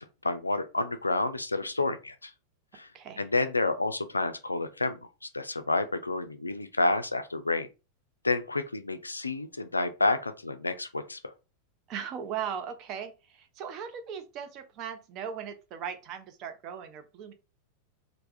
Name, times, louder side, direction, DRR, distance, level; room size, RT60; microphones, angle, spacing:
voice 1, 0.2-2.3 2.7-2.9 3.2-7.7 8.2-11.2, left 2 dB, 80° left, 0.3 m, -29 dB
voice 2, 11.9-17.3, right 8 dB, 35° right, 0.4 m, -38 dB
3.2 x 2.0 x 2.5 m
figure-of-eight pair, 90°, 0 cm